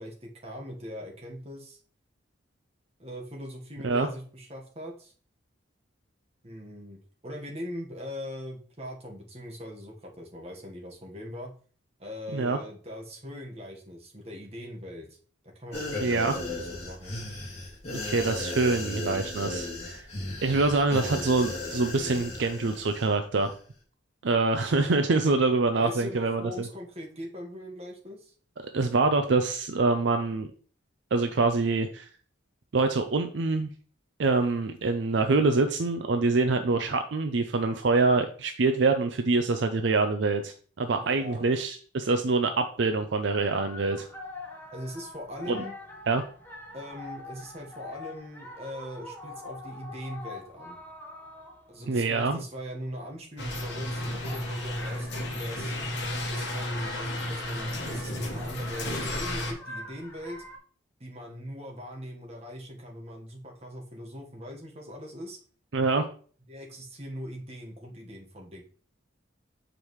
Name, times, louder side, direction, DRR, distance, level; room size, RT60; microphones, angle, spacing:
voice 1, 0.0-1.8 3.0-5.1 6.4-11.5 12.0-15.1 15.4-17.1 25.7-28.3 40.9-41.4 44.7-45.7 46.7-50.8 51.7-55.7 56.3-60.4 61.0-65.4 66.5-68.6, equal, 30° right, 0 dB, 1.4 m, -41 dB
sound 1, 15.7-23.1 23.4-23.5, left 2 dB, 30° left, 2.1 m, -35 dB
voice 2, 16.0-16.4 17.9-20.1 20.4-23.5 24.2-26.7 28.7-30.5 31.1-32.1 32.7-33.7 34.2-44.1 45.5-45.6 46.1-46.2 51.9-52.4 65.7-66.0, right 3 dB, 65° right, 7 dB, 0.5 m, -25 dB
sound 2, 43.2-52.1 53.7-60.6, left 2 dB, 10° left, 1.3 m, -45 dB
sound 3, 53.4-59.5, left 1 dB, 60° left, 1.4 m, -33 dB
7.2 x 5.0 x 3.1 m, 0.43 s
head